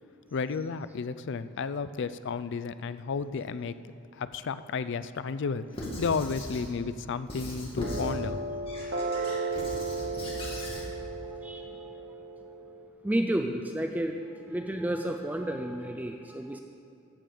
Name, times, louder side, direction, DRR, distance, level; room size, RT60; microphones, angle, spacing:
voice 1, 0.3-3.8 4.1-8.4, left 5 dB, 60° left, 13 dB, 0.4 m, -32 dB
Squeak / Writing, 5.7-6.7 7.3-8.2 8.7-10.9, equal, 25° left, 2.1 m, -38 dB
sound 1, 7.8-12.9, right 3 dB, 65° right, 1.3 m, -35 dB
voice 2, 10.7-12.2 13.0-16.6, right 1 dB, 10° right, 5 dB, 0.4 m, -33 dB
13.5 x 7.7 x 5.0 m, 2.6 s
head